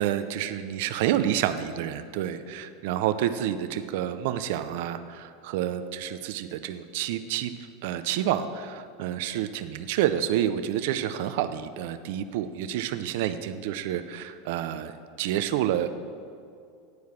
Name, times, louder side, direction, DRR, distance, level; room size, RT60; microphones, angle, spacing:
voice 1, 0.0-7.5 7.8-14.9 15.2-15.9, right 11 dB, 70° right, 10 dB, 0.4 m, -29 dB
9.4 x 4.7 x 7.0 m, 2.3 s
supercardioid pair, 115°, 0 cm